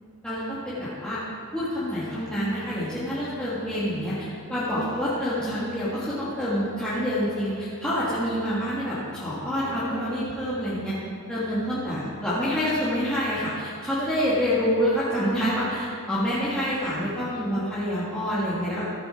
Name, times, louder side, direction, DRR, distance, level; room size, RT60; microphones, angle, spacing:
voice 1, 0.2-1.2 1.5-11.0 11.3-18.9, equal, 5° left, -12 dB, 2.0 m, -27 dB
13.5 x 8.8 x 4.6 m, 2.3 s
head